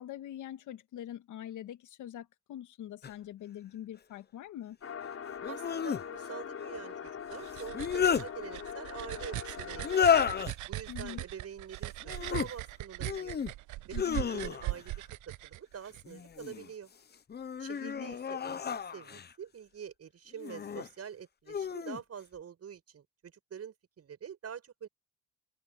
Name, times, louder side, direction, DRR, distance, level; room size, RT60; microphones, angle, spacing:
voice 1, 0.0-4.8 10.9-11.2 13.9-14.3 17.8-18.1, left 11 dB, 80° left, 1.8 m, -44 dB
sound 1, 3.0-3.1 5.4-6.0 7.5-8.3 9.8-10.5 12.0-12.5 13.0-13.5 13.9-14.8 16.0-16.7 17.3-19.3 20.4-20.9 21.5-22.0, left 7 dB, 35° left, 0.8 m, -31 dB
sound 2, 4.8-10.5, left 7 dB, 50° left, 4.6 m, -42 dB
voice 2, 5.5-10.3 10.7-13.4 13.9-14.0 14.3-14.9 15.3-16.9 17.6-24.9, right 8 dB, 55° right, 7.0 m, -46 dB
sound 3, 7.1-16.0, right 18 dB, 75° right, 0.5 m, -40 dB
cardioid pair, 90°, 30 cm